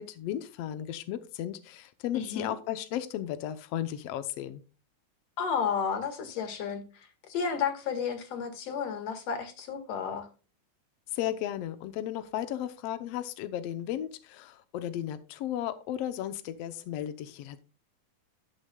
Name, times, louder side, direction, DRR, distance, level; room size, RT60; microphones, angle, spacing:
voice 1, 0.0-4.6 11.1-17.6, left 11 dB, 85° left, 1.4 m, -35 dB
voice 2, 2.1-2.5 5.4-10.3, left 6 dB, 50° left, 2.6 m, -32 dB
12.0 x 9.9 x 2.3 m
omnidirectional pair, 4.0 m